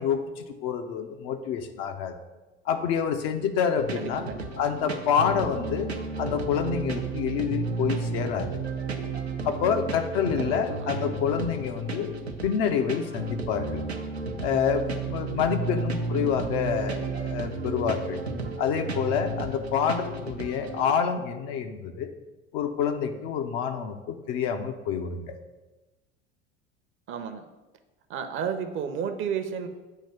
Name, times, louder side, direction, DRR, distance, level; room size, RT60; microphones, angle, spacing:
voice 1, 0.0-2.1 2.7-4.3 4.6-5.9 6.2-8.6 9.4-12.1 12.4-13.8 14.4-18.2 18.6-22.1 22.5-25.4, left 7 dB, 50° left, 6 dB, 0.7 m, -27 dB
sound 1, 3.8-20.9, right 3 dB, 85° right, 0.7 m, -33 dB
voice 2, 3.9-4.7 10.3-11.2 16.1-16.5 27.1-27.4 28.1-29.7, right 7 dB, 40° right, 8 dB, 0.7 m, -33 dB
8.4 x 3.0 x 5.6 m, 1.1 s
figure-of-eight pair, 65°, 31 cm